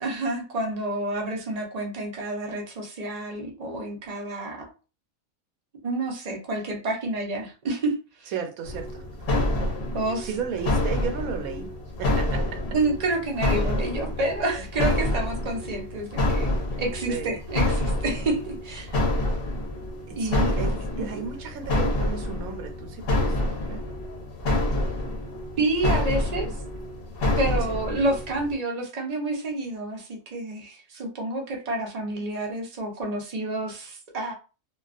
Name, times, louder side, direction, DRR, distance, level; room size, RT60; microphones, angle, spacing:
voice 1, 0.0-4.7 5.8-8.3 9.9-10.3 12.7-16.5 16.8-18.9 20.1-21.2 25.6-26.5 27.4-34.3, right 2 dB, 50° right, 1 dB, 0.5 m, -29 dB
voice 2, 8.3-9.4 10.2-11.7 12.0-12.6 17.1-17.3 20.1-23.8 27.7-27.8, right 6 dB, 85° right, 5 dB, 1.1 m, -34 dB
sound 1, 8.7-28.5, left 1 dB, 55° left, 0.7 m, -27 dB
2.3 x 2.2 x 2.4 m, 0.33 s
omnidirectional pair, 1.4 m